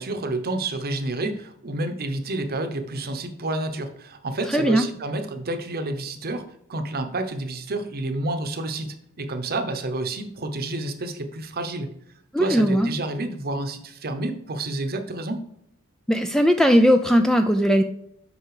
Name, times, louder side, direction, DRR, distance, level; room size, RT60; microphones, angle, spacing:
voice 1, 0.0-11.9 12.4-15.5, right 2 dB, 45° right, 8 dB, 0.9 m, -29 dB
voice 2, 4.5-4.9 12.3-12.9 16.1-17.8, equal, ahead, 6 dB, 0.4 m, -18 dB
8.2 x 5.5 x 4.9 m, 0.73 s
head